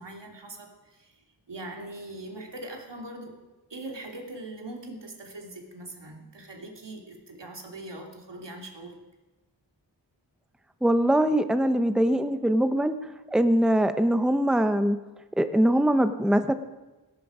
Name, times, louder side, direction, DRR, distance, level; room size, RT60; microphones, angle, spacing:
voice 1, 0.0-3.4 3.7-9.0, right 2 dB, 85° right, 2 dB, 2.9 m, -41 dB
voice 2, 10.8-13.0 13.3-15.0 15.4-16.5, right 1 dB, ahead, 9 dB, 0.9 m, -22 dB
17.0 x 16.0 x 5.0 m, 1.1 s
wide cardioid pair, 60°, 41 cm